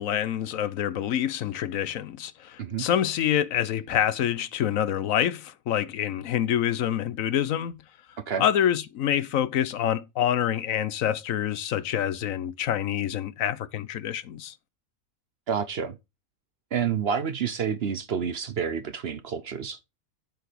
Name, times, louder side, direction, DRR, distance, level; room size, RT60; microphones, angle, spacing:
voice 1, 0.0-7.8 8.4-14.5, left 10 dB, 75° left, 1.1 m, -26 dB
voice 2, 15.5-16.0 16.7-19.8, right 7 dB, 55° right, 0.9 m, -29 dB
7.8 x 4.7 x 5.0 m
omnidirectional pair, 1.5 m